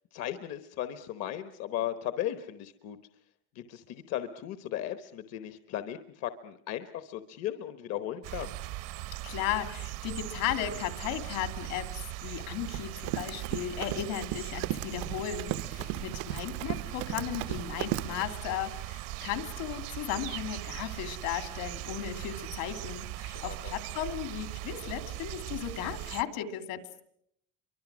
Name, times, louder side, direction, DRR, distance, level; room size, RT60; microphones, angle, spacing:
voice 1, 0.1-3.0 3.5-8.6 15.8-16.0 23.3-23.8, left 11 dB, 45° left, 10 dB, 1.0 m, -36 dB
sound 1, 8.2-26.2, right 15 dB, 60° right, 0.9 m, -39 dB
voice 2, 9.2-27.0, left 11 dB, 70° left, 9 dB, 2.9 m, -36 dB
Run, 12.5-18.2, right 14 dB, 90° right, 1.1 m, -36 dB
29.5 x 24.0 x 6.2 m, 0.71 s
cardioid pair, 180°, 36 cm